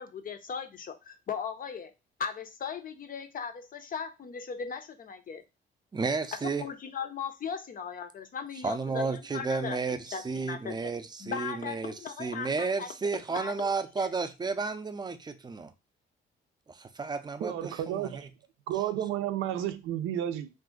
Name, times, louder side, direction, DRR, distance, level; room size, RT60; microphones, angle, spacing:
voice 1, 0.0-1.9 2.2-5.4 6.6-9.8 10.1-10.7 11.2-12.9 13.3-13.7 14.0-14.1, left 6 dB, 45° left, 0.5 m, -38 dB
voice 2, 5.9-6.7 8.6-15.7 16.7-18.3, right 4 dB, 20° right, 0.4 m, -32 dB
voice 3, 17.4-18.3 18.7-20.5, right 11 dB, 85° right, 0.5 m, -32 dB
2.5 x 2.3 x 3.7 m
cardioid pair, 90°, 20 cm